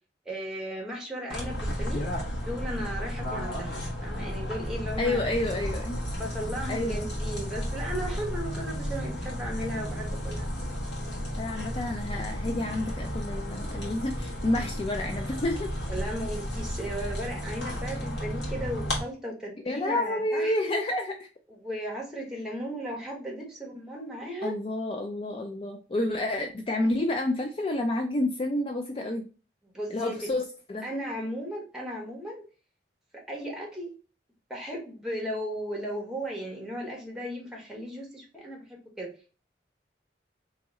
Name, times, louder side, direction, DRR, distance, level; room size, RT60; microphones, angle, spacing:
voice 1, 0.2-2.1 2.5-5.2 6.2-10.5 14.6-14.7 15.9-20.8 21.5-24.6 29.7-30.1 30.8-32.4 33.1-34.0 34.5-38.6 39.0-39.1, equal, 5° right, -2 dB, 1.1 m, -36 dB
sound 1, 1.3-19.0, equal, 75° left, 1.4 m, -33 dB
voice 2, 5.0-6.0 6.7-7.1 11.4-15.7 19.7-21.1 24.4-29.2 29.9-30.9, left 1 dB, 30° left, 4 dB, 0.3 m, -29 dB
2.9 x 2.9 x 3.6 m, 0.35 s
head